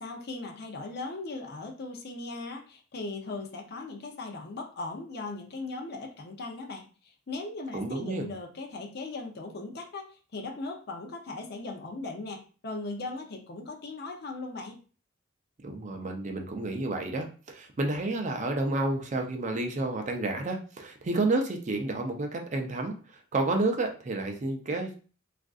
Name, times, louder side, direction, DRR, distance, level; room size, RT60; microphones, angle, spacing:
voice 1, 0.0-14.8, left 3 dB, 50° left, 2 dB, 0.5 m, -38 dB
voice 2, 7.7-8.2 15.6-22.9 23.3-24.9, right 2 dB, 35° right, 4 dB, 0.4 m, -30 dB
3.5 x 2.5 x 2.3 m, 0.37 s
head